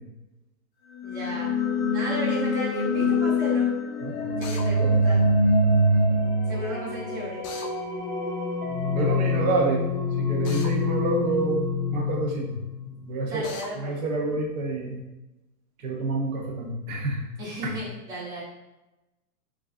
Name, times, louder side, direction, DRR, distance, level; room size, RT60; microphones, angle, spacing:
sound 1, 1.0-12.9, left 1 dB, 40° left, 0.4 m, -25 dB
voice 1, 1.0-1.5 1.9-3.7 4.3-5.2 6.5-7.4 13.2-13.9 17.4-18.4, equal, 10° right, -10 dB, 0.6 m, -34 dB
voice 2, 4.0-4.4 8.9-9.8 10.2-12.6 12.9-15.0 15.8-17.2 17.6-17.7, right 3 dB, 60° right, 0 dB, 0.8 m, -28 dB
Drill, 4.4-4.7 7.4-7.7 10.4-10.7 13.4-13.7, left 4 dB, 80° left, 0.7 m, -38 dB
3.1 x 2.4 x 2.4 m, 1.0 s
hypercardioid pair, 145°, 46 cm